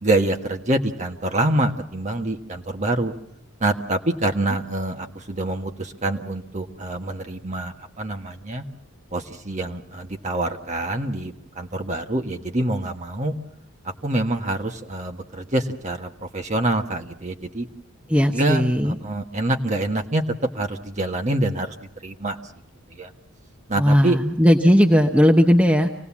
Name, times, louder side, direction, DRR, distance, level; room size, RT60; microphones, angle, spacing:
voice 1, 0.0-3.1 3.6-8.6 9.1-13.3 14.0-17.7 18.3-20.2 20.5-22.4 23.0-23.1 23.7-24.2, right 1 dB, 35° right, 4 dB, 1.5 m, -26 dB
voice 2, 18.1-18.9 23.7-25.9, equal, 5° right, 4 dB, 0.8 m, -17 dB
26.0 x 18.0 x 7.3 m, 0.76 s
head